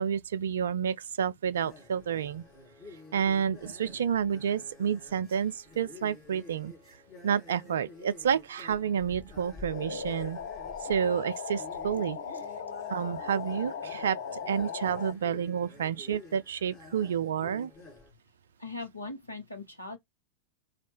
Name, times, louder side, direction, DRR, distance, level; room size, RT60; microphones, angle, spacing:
voice 1, 0.0-2.4 3.1-6.7 7.2-10.4 10.8-12.2 12.9-17.7, right 8 dB, 65° right, 0.3 m, -30 dB
sound 1, 1.5-18.1, left 3 dB, 30° left, 1.9 m, -50 dB
sound 2, 9.7-15.1, left 6 dB, 60° left, 0.5 m, -38 dB
voice 2, 18.6-20.0, left 3 dB, 80° left, 1.0 m, -40 dB
4.1 x 2.6 x 3.5 m
figure-of-eight pair, 90°, 0 cm